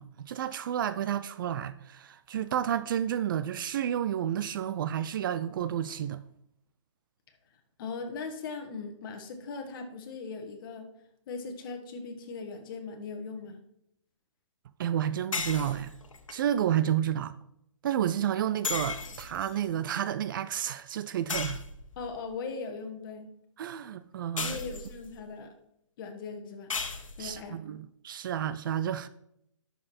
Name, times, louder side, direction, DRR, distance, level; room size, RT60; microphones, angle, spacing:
voice 1, 0.0-6.2 14.8-15.9 16.3-17.4 17.8-21.6 23.6-24.6 27.2-29.1, right 10 dB, 40° right, 0.4 m, -31 dB
voice 2, 7.8-10.9 11.3-13.6 22.0-23.3 24.4-25.5 26.0-26.7 27.2-27.6, left 4 dB, 40° left, 1.6 m, -39 dB
sound 1, 15.3-16.3 18.6-19.7 21.3-22.2 24.4-25.2 26.7-27.4, left 5 dB, 80° left, 1.4 m, -36 dB
10.0 x 6.7 x 4.3 m
hypercardioid pair, 145°, 17 cm